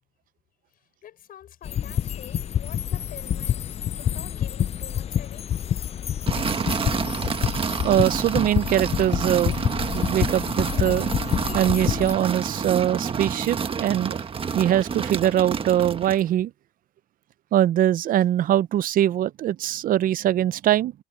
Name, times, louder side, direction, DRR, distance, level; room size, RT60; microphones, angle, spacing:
voice 1, 0.7-5.5, left 10 dB, 60° left, 5.8 m, -47 dB
sound 1, 1.6-12.1, left 9 dB, 40° left, 0.5 m, -27 dB
sound 2, 6.3-16.3, right 6 dB, 30° right, 1.4 m, -29 dB
voice 2, 7.8-11.1 11.5-14.2 14.5-16.5 17.5-20.9, right 11 dB, 55° right, 0.6 m, -22 dB
cardioid pair, 110°, 17 cm